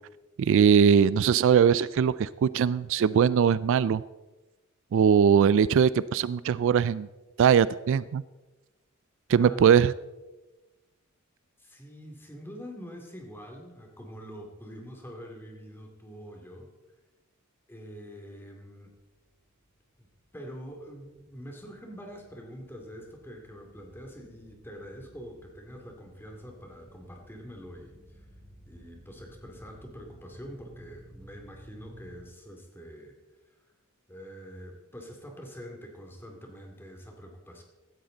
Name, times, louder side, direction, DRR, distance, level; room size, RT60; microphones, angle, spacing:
voice 1, 0.4-4.0 4.9-7.1 7.4-8.2 9.3-9.9, right 7 dB, 60° right, 18 dB, 0.3 m, -21 dB
voice 2, 9.3-9.8 11.6-16.7 17.7-19.0 20.0-20.1 20.3-28.2 28.7-33.2 34.1-37.6, equal, 10° left, 2 dB, 2.4 m, -45 dB
sound 1, 19.0-32.3, equal, 15° right, 5.1 m, -55 dB
16.5 x 13.0 x 3.9 m, 1.1 s
head